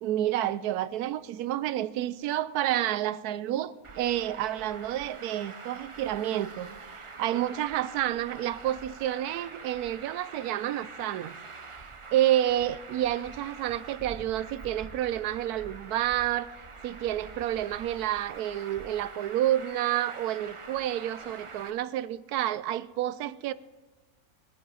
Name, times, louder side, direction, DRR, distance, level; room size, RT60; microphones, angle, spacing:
voice 1, 0.0-11.4 12.1-16.5 16.8-23.5, right 12 dB, 75° right, 1.1 m, -29 dB
Traffic noise roadway noise, 3.8-21.7, right 4 dB, 45° right, 0.4 m, -45 dB
21.0 x 8.7 x 4.9 m
omnidirectional pair, 1.7 m